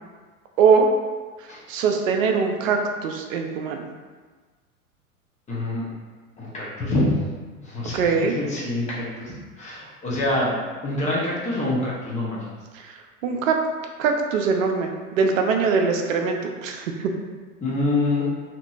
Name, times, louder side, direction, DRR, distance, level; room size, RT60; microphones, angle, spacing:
voice 1, 1.4-3.9 7.9-8.4 12.7-13.6 14.0-17.1, right 5 dB, 60° right, 3 dB, 0.5 m, -22 dB
voice 2, 5.5-5.9 6.4-7.1 7.6-10.5 10.8-12.5 17.6-18.3, left 2 dB, 15° left, -6 dB, 0.6 m, -26 dB
2.8 x 2.5 x 2.3 m, 1.4 s
figure-of-eight pair, 90°, 44 cm